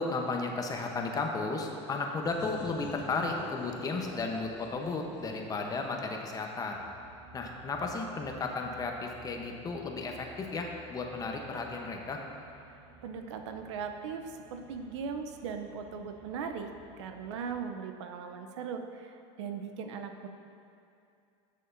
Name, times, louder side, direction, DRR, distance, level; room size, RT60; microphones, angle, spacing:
voice 1, 0.0-6.8 7.3-12.2, left 3 dB, 25° left, 2 dB, 0.8 m, -34 dB
sound 1, 2.2-6.8, left 3 dB, 65° left, 1.6 m, -48 dB
sound 2, 6.7-17.6, right 2 dB, 55° right, 1.5 m, -56 dB
voice 2, 13.0-16.7 17.0-20.3, right 6 dB, 85° right, 6 dB, 0.6 m, -39 dB
11.0 x 6.6 x 2.6 m, 2.6 s
supercardioid pair, 115°, 15 cm